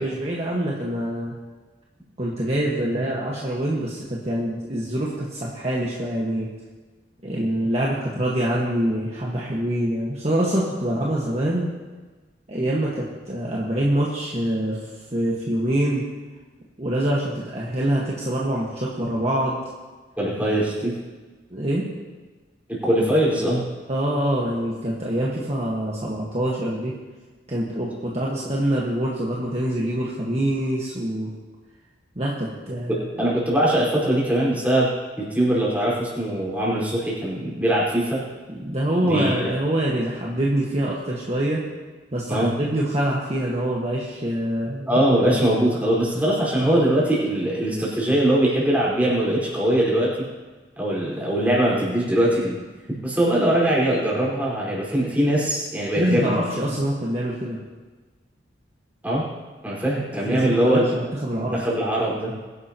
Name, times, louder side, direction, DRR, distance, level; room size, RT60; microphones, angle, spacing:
voice 1, 0.0-1.4 2.2-6.5 7.2-11.7 12.5-16.1 16.8-19.6 21.5-21.9 23.9-26.9 27.5-31.3 32.1-33.3 38.5-41.6 42.1-45.4 56.0-57.6 60.2-61.6, right 1 dB, 35° right, -5 dB, 1.6 m, -25 dB
voice 2, 20.2-21.0 22.7-23.6 32.9-38.2 39.0-39.5 42.3-42.5 44.9-50.1 50.8-52.6 53.0-56.3 59.0-59.2 59.6-60.9 61.4-62.3, right 1 dB, 10° right, -6 dB, 4.9 m, -21 dB
22.5 x 11.0 x 3.0 m, 1.3 s
head